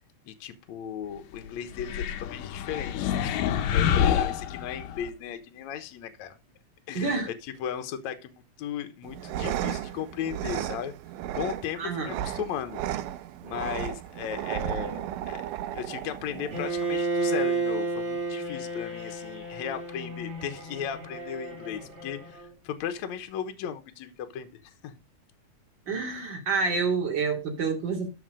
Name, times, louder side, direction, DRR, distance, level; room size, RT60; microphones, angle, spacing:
voice 1, 0.3-6.4 6.9-7.2 7.4-10.9 11.3-12.8 13.4-15.4 15.7-24.9, left 9 dB, 70° left, 2.2 m, -36 dB
sound 1, 1.7-5.1, left 9 dB, 85° left, 2.6 m, -27 dB
voice 2, 6.9-7.3 11.8-12.2 25.9-28.1, right 4 dB, 35° right, 2.8 m, -28 dB
sound 2, 9.0-17.0, right 12 dB, 85° right, 2.3 m, -34 dB
Bowed string instrument, 16.5-22.5, right 3 dB, 20° right, 2.7 m, -32 dB
13.0 x 4.9 x 5.0 m
omnidirectional pair, 3.7 m